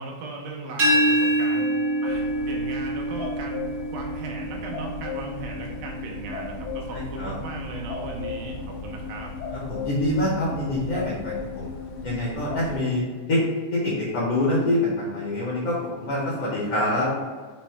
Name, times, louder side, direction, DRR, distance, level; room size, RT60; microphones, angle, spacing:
voice 1, 0.0-1.7 2.0-9.3, right 3 dB, 90° right, -1 dB, 2.2 m, -37 dB
sound 1, 0.8-6.5, right 1 dB, 70° right, 0.7 m, -26 dB
sound 2, 1.5-14.1 14.3-14.4, left 5 dB, 50° left, 0.8 m, -40 dB
sound 3, 2.0-12.8, left 4 dB, 85° left, 2.1 m, -37 dB
voice 2, 6.9-7.3 9.5-11.7 12.0-13.4 13.7-17.1, left 1 dB, 70° left, -7 dB, 1.5 m, -25 dB
5.4 x 2.0 x 4.3 m, 1.5 s
omnidirectional pair, 3.6 m